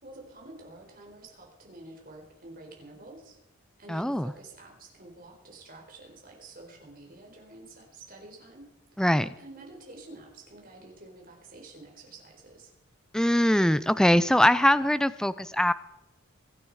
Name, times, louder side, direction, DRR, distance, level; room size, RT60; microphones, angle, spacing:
voice 1, 0.0-3.4 3.8-8.7 9.4-12.7, right 2 dB, 40° right, 1 dB, 4.3 m, -49 dB
voice 2, 3.9-4.3 9.0-9.3 13.1-15.7, left 1 dB, 5° left, 15 dB, 0.4 m, -22 dB
24.0 x 9.7 x 4.9 m, 0.91 s
head